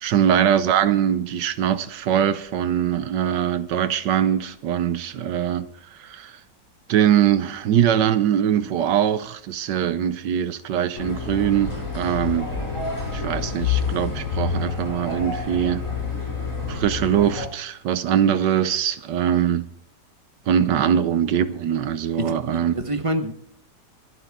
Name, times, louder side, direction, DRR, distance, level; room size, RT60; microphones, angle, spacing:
voice 1, 0.0-6.3 6.9-12.5 13.1-15.8 16.7-19.7 20.5-22.7, right 9 dB, 80° right, 1.4 m, -22 dB
sound 1, 10.9-17.5, left 5 dB, 45° left, 6.4 m, -28 dB
voice 2, 22.2-23.3, right 1 dB, 20° right, 1.1 m, -27 dB
26.5 x 9.0 x 3.6 m
omnidirectional pair, 1.9 m